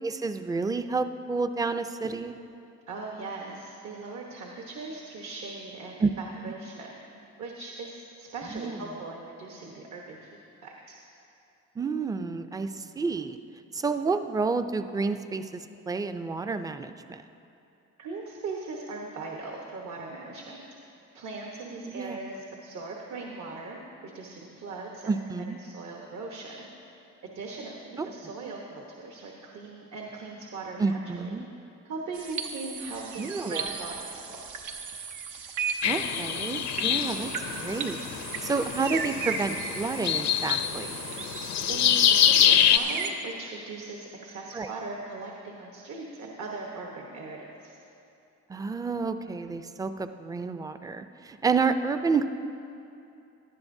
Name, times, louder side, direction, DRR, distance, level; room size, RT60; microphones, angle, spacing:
voice 1, 0.0-2.3 6.0-6.1 8.5-8.8 11.8-13.4 13.7-17.2 21.8-22.2 25.1-25.6 28.0-28.1 28.4-28.5 30.8-31.5 33.2-33.6 35.9-37.3 37.6-38.0 38.4-40.9 44.5-44.7 48.5-52.3, right 4 dB, 10° right, 9 dB, 0.4 m, -30 dB
voice 2, 2.9-7.0 7.4-10.9 18.0-20.6 21.1-26.7 27.3-31.4 31.8-34.6 41.7-47.8, right 3 dB, 65° right, 0 dB, 1.2 m, -39 dB
sound 1, 32.1-43.1, right 5 dB, 90° right, 0.9 m, -36 dB
sound 2, 35.8-42.8, left 9 dB, 60° left, 0.6 m, -25 dB
18.0 x 11.0 x 2.7 m, 2.8 s
cardioid pair, 90°, 30 cm